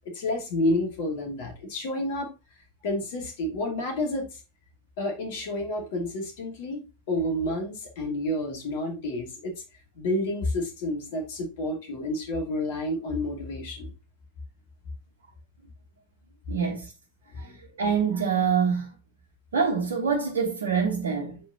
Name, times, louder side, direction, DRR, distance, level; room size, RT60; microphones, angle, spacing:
voice 1, 0.1-2.3 2.8-4.3 5.0-9.5 10.0-13.9 17.3-17.6, left 1 dB, 50° left, 2.5 m, -30 dB
voice 2, 16.5-16.9 17.3-18.9 19.5-21.4, right 6 dB, 65° right, 1.1 m, -26 dB
7.4 x 5.0 x 2.9 m
figure-of-eight pair, 90°, 0 cm